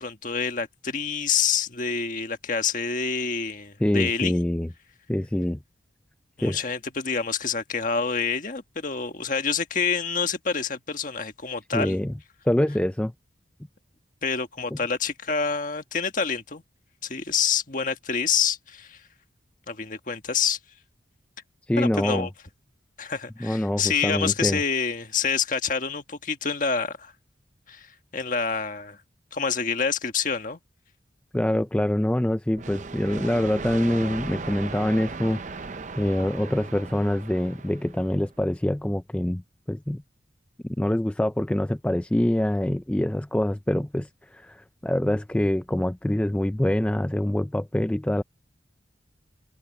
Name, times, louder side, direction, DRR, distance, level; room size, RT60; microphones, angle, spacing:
voice 1, 0.0-4.4 6.4-12.0 14.2-16.6 17.0-19.0 19.7-20.6 21.8-22.3 23.0-27.1 27.7-29.0 29.3-30.6, left 6 dB, 45° left, 1.6 m, -27 dB
voice 2, 3.8-4.7 5.1-5.6 6.4-6.7 11.7-12.1 12.5-13.1 21.7-22.3 23.4-24.6 31.3-39.4 39.7-40.0 40.8-48.2, left 1 dB, 5° left, 0.3 m, -25 dB
sound 1, 32.6-38.3, right 4 dB, 40° right, 0.6 m, -37 dB
head